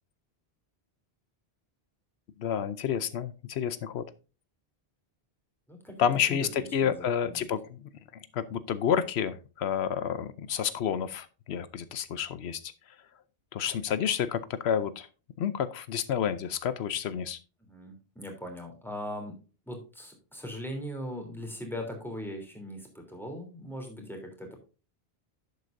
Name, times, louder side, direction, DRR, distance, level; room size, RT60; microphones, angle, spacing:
voice 1, 2.4-4.0 6.0-7.8 8.3-12.6 13.5-15.1 15.4-17.4, left 8 dB, 90° left, 14 dB, 1.0 m, -29 dB
voice 2, 5.7-7.5 17.6-19.4 19.7-24.6, equal, ahead, 2 dB, 3.2 m, -40 dB
11.0 x 8.1 x 2.6 m, 0.33 s
omnidirectional pair, 1.1 m